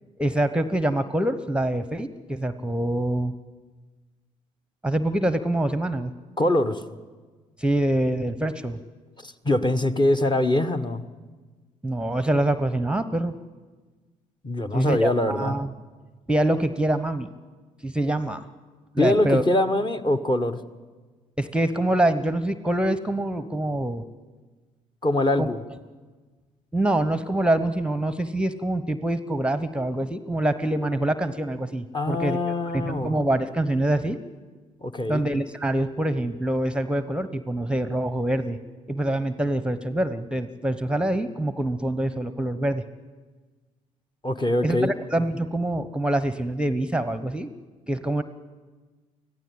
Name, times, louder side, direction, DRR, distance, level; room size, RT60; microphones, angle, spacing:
voice 1, 0.2-3.3 4.8-6.1 7.6-8.8 11.8-13.3 14.7-15.7 16.3-17.3 17.8-18.5 18.9-19.4 21.4-24.0 25.4-25.5 26.7-32.4 32.7-34.2 35.1-38.6 38.9-42.8 44.6-47.5 47.9-48.2, right 1 dB, 5° right, 12 dB, 1.0 m, -25 dB
voice 2, 6.4-6.8 9.2-11.0 14.4-15.6 19.0-20.6 25.0-25.6 31.9-33.2 34.8-35.2 44.2-44.9, left 1 dB, 25° left, 7 dB, 1.4 m, -23 dB
25.0 x 15.5 x 8.6 m, 1.4 s
figure-of-eight pair, 45°, 18 cm